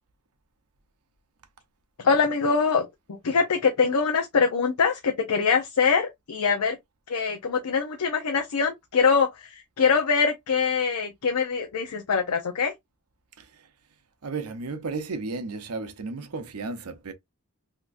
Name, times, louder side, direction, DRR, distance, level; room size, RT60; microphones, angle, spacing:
voice 1, 2.0-6.8 7.1-12.7, left 5 dB, 90° left, 0.6 m, -24 dB
voice 2, 14.2-17.1, right 3 dB, 75° right, 0.7 m, -33 dB
3.5 x 2.8 x 2.5 m
head